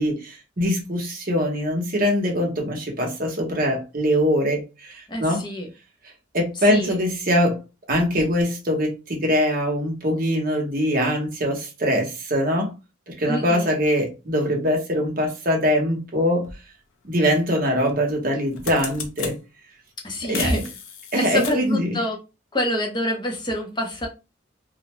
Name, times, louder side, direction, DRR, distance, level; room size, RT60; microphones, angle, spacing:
voice 1, 0.0-5.4 6.3-7.6 7.9-12.7 13.1-16.5 17.0-19.4 20.3-20.6 21.1-22.0, equal, 45° right, 0.8 m, -23 dB
voice 2, 5.1-5.7 6.7-7.0 13.3-13.7 20.0-20.6 21.2-22.2 22.5-24.1, left 1 dB, 25° left, 0.6 m, -26 dB
sound 1, 16.4-16.6 17.9-18.1 18.4-19.4 20.3-21.8, left 6 dB, 90° left, 0.5 m, -34 dB
2.4 x 2.1 x 3.0 m
head